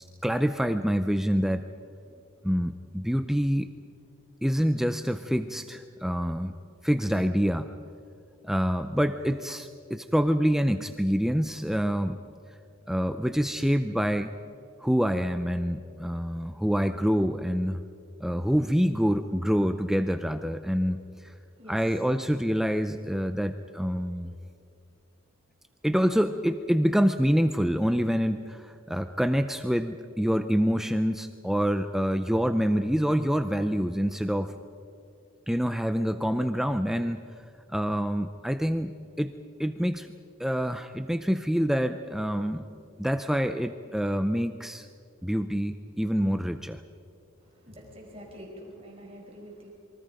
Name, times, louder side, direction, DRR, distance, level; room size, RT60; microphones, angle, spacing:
voice 1, 0.2-1.7 2.4-3.7 4.4-6.6 6.8-7.7 8.4-12.2 12.9-14.3 14.8-17.8 18.2-21.3 21.7-24.3 25.8-34.5 35.5-37.2 37.7-39.3 39.6-40.1 40.4-42.6 43.0-44.9 45.2-46.8, equal, ahead, 8 dB, 0.5 m, -26 dB
voice 2, 47.4-49.7, equal, 25° right, -1 dB, 5.0 m, -46 dB
27.0 x 24.0 x 5.2 m, 2.4 s
head